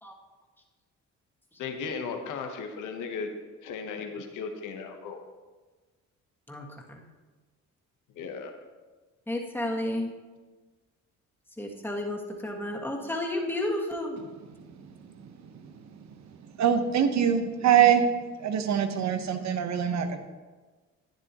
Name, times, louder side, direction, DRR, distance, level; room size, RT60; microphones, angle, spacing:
voice 1, 1.6-3.3 3.6-5.2 8.1-8.5, left 5 dB, 85° left, 5 dB, 1.1 m, -36 dB
voice 2, 6.5-7.0 9.3-10.1 11.6-14.2, left 1 dB, 5° left, -1 dB, 1.7 m, -32 dB
voice 3, 16.6-18.1 18.4-20.2, right 9 dB, 65° right, 8 dB, 1.0 m, -23 dB
11.5 x 9.8 x 3.0 m, 1.3 s
cardioid pair, 90°, 30 cm